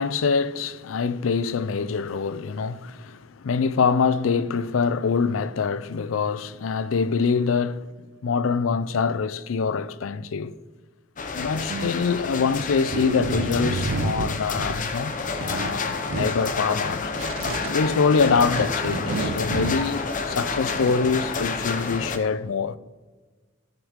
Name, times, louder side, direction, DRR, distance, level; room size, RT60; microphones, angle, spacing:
voice 1, 0.0-7.9 8.2-10.5 11.3-17.1 17.7-22.8, left 5 dB, 80° left, 0.4 m, -24 dB
sound 1, 11.2-22.2, left 4 dB, 40° left, 0.8 m, -29 dB
sound 2, 11.7-12.5 12.9-14.8 15.1-16.3 16.7-17.8 18.3-21.0, right 3 dB, 90° right, 0.6 m, -30 dB
13.5 x 7.2 x 3.6 m
head